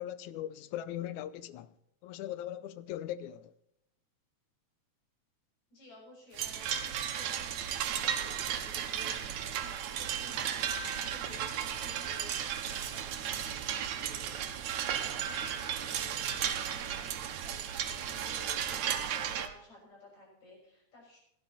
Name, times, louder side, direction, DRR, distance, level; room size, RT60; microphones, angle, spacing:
voice 1, 0.0-1.7 2.0-3.5, left 12 dB, 85° left, 2.1 m, -39 dB
voice 2, 5.7-17.6 17.9-21.2, left 1 dB, 70° left, 7.4 m, -54 dB
sound 1, 6.3-19.5, right 9 dB, 75° right, 2.5 m, -34 dB
17.5 x 12.0 x 4.1 m
omnidirectional pair, 3.3 m